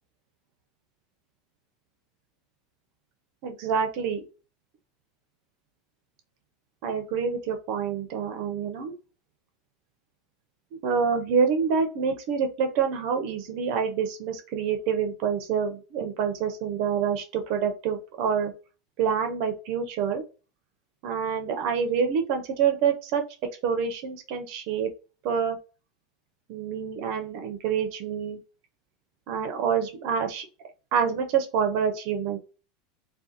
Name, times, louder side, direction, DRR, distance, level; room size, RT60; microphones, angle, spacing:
voice 1, 3.4-4.2 6.8-8.9 10.8-18.5 19.0-20.2 21.0-23.2 23.6-24.9 25.2-25.6 26.5-28.4 29.3-30.5 30.9-32.4, right 6 dB, 45° right, 5 dB, 0.4 m, -27 dB
2.5 x 2.1 x 2.7 m, 0.33 s
supercardioid pair, 180°, 0 cm